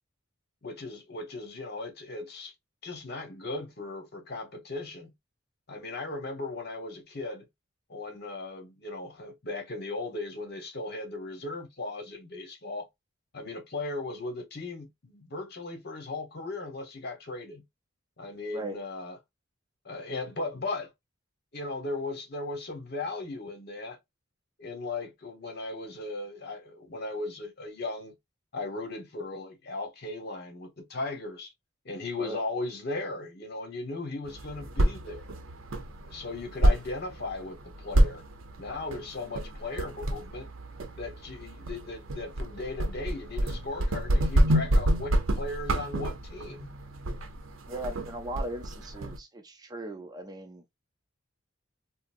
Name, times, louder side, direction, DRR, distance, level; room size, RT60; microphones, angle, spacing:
voice 1, 0.6-2.5 2.8-5.1 5.7-7.4 7.9-12.9 13.3-17.6 18.2-19.2 19.8-20.9 21.5-24.0 24.6-28.2 28.5-31.5 31.8-35.3 36.0-38.2 38.6-40.5 41.0-46.7, left 2 dB, 55° left, 1.0 m, -37 dB
sound 1, 34.2-49.2, right 1 dB, 80° right, 0.6 m, -28 dB
voice 2, 47.7-50.8, right 2 dB, 20° right, 0.4 m, -38 dB
3.8 x 2.0 x 2.5 m
head